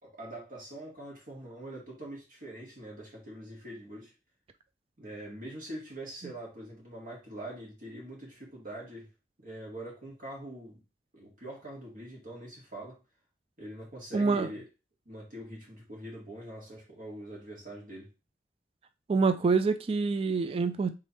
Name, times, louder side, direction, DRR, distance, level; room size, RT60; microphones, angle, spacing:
voice 1, 0.0-4.1 5.0-9.1 9.4-10.8 11.1-13.0 13.6-14.7 15.1-18.1, right 1 dB, 50° right, 2.2 m, -43 dB
voice 2, 14.1-14.5 19.1-21.0, right 4 dB, 35° right, 0.3 m, -26 dB
3.5 x 3.4 x 4.2 m
head